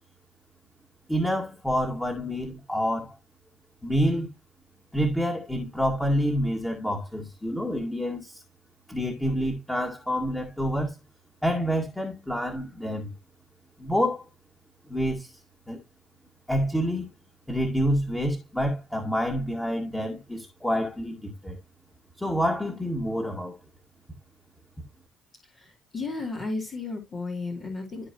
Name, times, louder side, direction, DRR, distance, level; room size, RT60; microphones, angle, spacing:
voice 1, 1.1-3.2 3.8-4.3 4.9-8.4 8.9-11.0 11.4-13.1 13.8-14.3 14.9-15.4 15.7-15.8 16.5-17.1 17.5-21.6 22.2-23.6, equal, 5° left, 2.1 m, -27 dB
voice 2, 25.4-28.1, left 3 dB, 40° left, 2.6 m, -34 dB
13.5 x 4.7 x 2.9 m
figure-of-eight pair, 50°, 0 cm